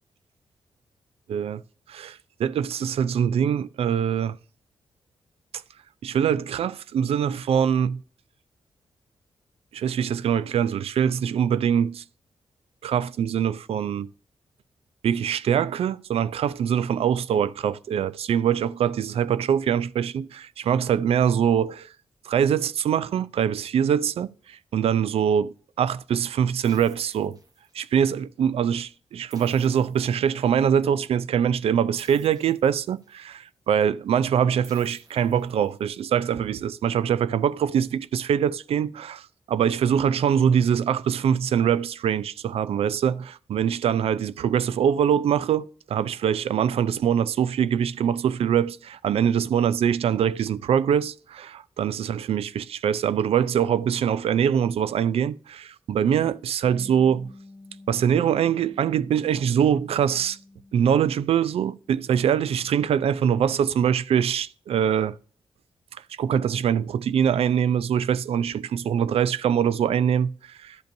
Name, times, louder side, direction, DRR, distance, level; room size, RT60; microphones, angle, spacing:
voice 1, 1.3-1.6 1.9-4.4 6.0-8.0 9.7-12.0 12.8-14.1 15.0-21.9 22.2-27.4 27.7-57.3 57.9-60.4 60.7-65.2 65.9-70.8, right 8 dB, 80° right, 0.4 m, -23 dB
sound 1, 26.6-28.0 29.3-30.7 32.0-33.3 34.6-36.0, right 3 dB, 40° right, 1.1 m, -53 dB
Bass guitar, 56.6-62.9, left 2 dB, 10° right, 1.3 m, -49 dB
12.0 x 5.2 x 2.6 m
cardioid pair, 90°, 10 cm